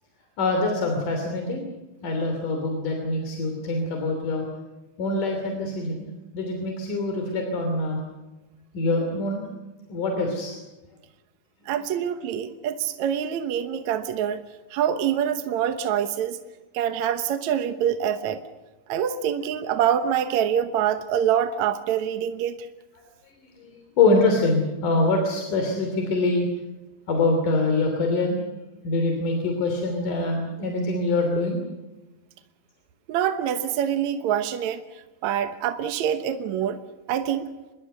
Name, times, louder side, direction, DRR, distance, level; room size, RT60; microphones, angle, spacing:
voice 1, 0.4-1.7 2.0-4.5 5.0-6.1 6.3-8.0 8.7-9.5 9.9-10.6 23.5-26.5 27.1-28.4 28.8-31.6, left 2 dB, 90° left, 3 dB, 4.7 m, -24 dB
voice 2, 11.7-14.4 14.7-16.4 16.7-18.4 18.9-22.6 33.1-34.8 35.2-36.8 37.1-37.5, right 9 dB, 70° right, 9 dB, 2.3 m, -25 dB
27.0 x 21.5 x 6.8 m, 1.1 s
omnidirectional pair, 3.6 m